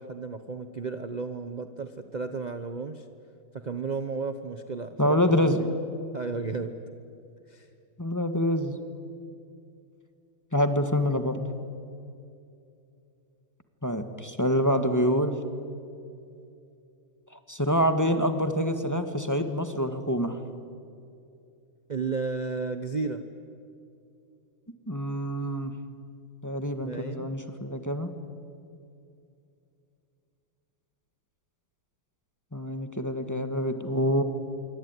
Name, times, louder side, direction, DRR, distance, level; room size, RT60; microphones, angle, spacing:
voice 1, 0.0-3.0 3.5-5.7 6.1-6.7 7.5-7.7 21.9-23.2 26.8-27.3, right 4 dB, 45° right, 9 dB, 0.6 m, -33 dB
voice 2, 5.0-5.6 8.0-8.8 10.5-11.4 13.8-15.4 17.5-20.4 24.9-25.8 26.4-28.1 32.5-34.2, equal, 10° left, 8 dB, 1.3 m, -26 dB
26.0 x 23.5 x 9.6 m, 2.6 s
omnidirectional pair, 2.2 m